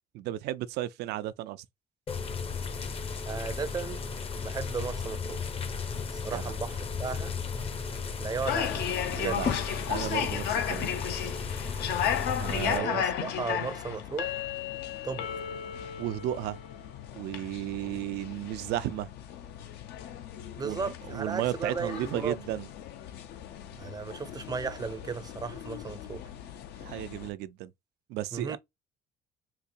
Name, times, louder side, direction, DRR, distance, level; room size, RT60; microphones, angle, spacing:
voice 1, 0.1-1.6 6.3-6.4 9.1-9.5 9.9-10.9 12.4-13.1 16.0-16.6 17.2-19.1 20.6-22.7 26.8-27.7 28.1-28.6, right 14 dB, 80° right, 0.4 m, -34 dB
sound 1, 2.1-12.8, left 5 dB, 35° left, 0.6 m, -35 dB
voice 2, 3.3-4.0 4.4-5.4 6.1-7.3 8.2-8.8 9.2-9.4 12.7-14.4 15.0-15.3 20.6-22.4 23.8-26.3 28.3-28.6, right 5 dB, 25° right, 0.5 m, -35 dB
sound 2, 8.4-27.3, left 9 dB, 75° left, 0.6 m, -35 dB
4.1 x 2.4 x 2.6 m
cardioid pair, 110°, 17 cm